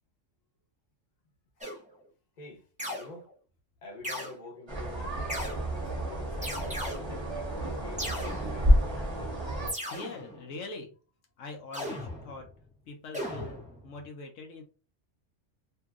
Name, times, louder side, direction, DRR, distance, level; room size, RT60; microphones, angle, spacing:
sound 1, 1.6-2.0 2.8-3.3 4.0-4.3 5.3-5.8 6.4-7.3 8.0-8.9 9.7-10.5 11.7-12.6 13.1-14.0, equal, 10° right, 0.5 m, -37 dB
voice 1, 3.0-3.3 3.8-5.2 5.5-8.9, left 2 dB, 40° left, 0.9 m, -48 dB
sound 2, 4.7-9.7, equal, 25° right, 0.9 m, -29 dB
voice 2, 9.8-10.9 11.4-12.5 12.9-14.6, left 3 dB, 75° left, 1.0 m, -43 dB
2.7 x 2.7 x 2.4 m
omnidirectional pair, 1.3 m